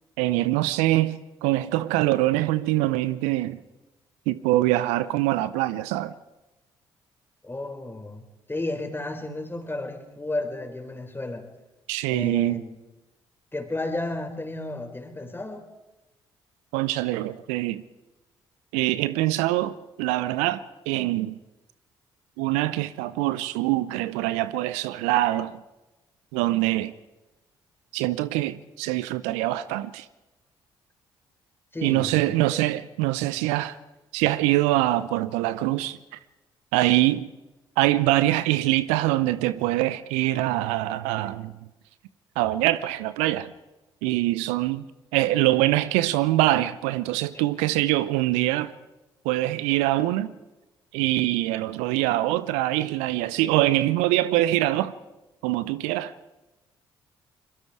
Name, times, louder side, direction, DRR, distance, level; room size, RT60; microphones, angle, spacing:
voice 1, 0.2-3.6 4.3-6.1 11.9-12.6 16.7-17.8 18.7-21.4 22.4-25.6 26.3-26.9 27.9-30.1 31.8-33.8 34.1-36.0 36.7-37.3 37.8-41.5 42.4-43.5 44.0-44.8 45.1-48.7 49.2-50.3 50.9-54.9 55.4-56.1, right 16 dB, 75° right, 0.6 m, -24 dB
voice 2, 7.4-8.2 8.5-11.5 12.1-12.8 13.5-15.6 31.7-32.6 47.3-47.5, left 2 dB, 20° left, 4.0 m, -33 dB
24.5 x 22.5 x 4.8 m
hypercardioid pair, 45°, 12 cm